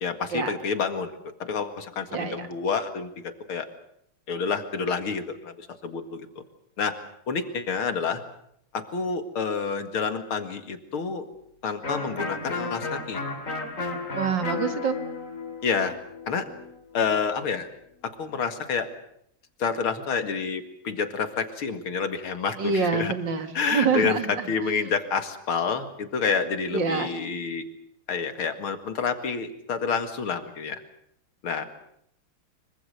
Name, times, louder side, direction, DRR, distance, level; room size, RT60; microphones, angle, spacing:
voice 1, 0.0-1.1 1.4-3.7 4.3-6.3 6.8-8.2 8.7-11.2 11.6-13.2 15.6-15.9 16.3-16.5 16.9-17.7 18.0-18.9 19.6-23.1 23.5-24.2 24.5-27.6 28.1-30.8 31.4-31.7, left 5 dB, 80° left, 8 dB, 2.9 m, -28 dB
Electric guitar, 11.8-17.4, left 3 dB, 35° left, 2.9 m, -34 dB
voice 2, 14.1-15.0 22.6-24.2 26.7-27.1, right 5 dB, 60° right, 8 dB, 2.5 m, -26 dB
25.5 x 24.0 x 6.8 m, 0.72 s
omnidirectional pair, 2.3 m